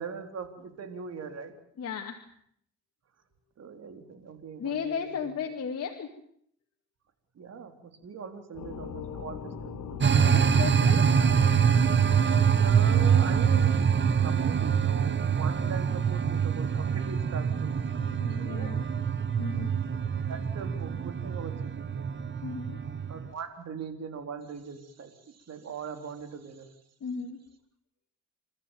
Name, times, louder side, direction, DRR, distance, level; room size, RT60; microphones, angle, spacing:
voice 1, 0.0-1.5 3.6-5.3 7.4-10.5 12.3-17.8 18.4-18.8 20.3-22.0 23.1-26.7, right 6 dB, 55° right, 7 dB, 4.0 m, -41 dB
voice 2, 1.8-2.2 4.6-6.1 10.2-11.0 18.0-18.8 19.4-19.8 22.4-22.8 27.0-27.4, left 6 dB, 55° left, 2 dB, 2.3 m, -35 dB
sound 1, 8.6-13.7, left 6 dB, 80° left, 2.8 m, -40 dB
sound 2, 10.0-23.3, right 7 dB, 40° right, 1.2 m, -25 dB
29.5 x 14.0 x 9.1 m, 0.67 s
cardioid pair, 90°, 30 cm